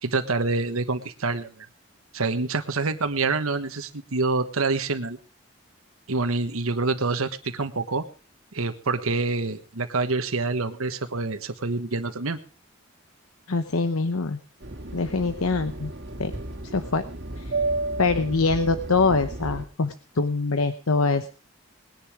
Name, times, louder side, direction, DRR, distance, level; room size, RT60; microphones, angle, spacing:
voice 1, 0.0-1.5 2.1-5.2 6.1-8.0 8.5-12.4, right 3 dB, 85° right, 6 dB, 1.3 m, -26 dB
voice 2, 13.5-14.4 14.9-15.9 16.2-16.3 16.7-17.0 17.4-17.5 18.0-21.3, left 4 dB, 85° left, 10 dB, 1.0 m, -24 dB
Fixed-wing aircraft airplane, 14.6-19.6, right 2 dB, 50° right, 2.0 m, -32 dB
20.0 x 10.5 x 4.9 m, 0.35 s
head